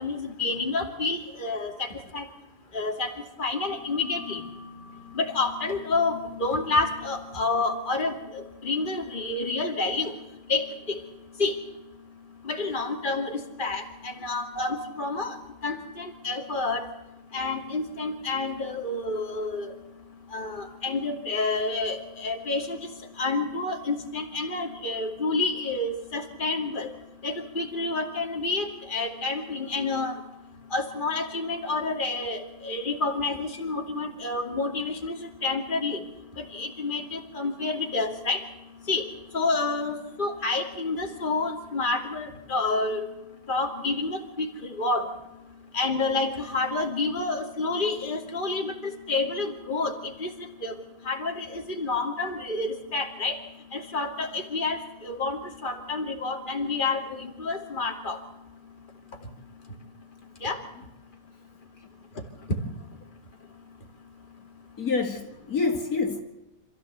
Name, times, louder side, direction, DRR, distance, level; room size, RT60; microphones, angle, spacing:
voice 1, 0.0-2.3 2.7-10.1 10.5-11.0 11.4-11.5 12.4-15.4 15.6-16.9 17.3-19.7 20.3-22.8 23.2-26.9 27.2-30.2 30.7-36.0 36.4-38.4 38.9-39.0 39.3-43.1 43.5-45.1 45.7-50.3 50.6-50.8 51.1-53.4 53.7-58.2 60.4-60.6, left 3 dB, 30° left, 2.7 m, -29 dB
voice 2, 64.8-66.2, left 4 dB, 65° left, 3.0 m, -27 dB
27.0 x 14.5 x 8.1 m
omnidirectional pair, 1.6 m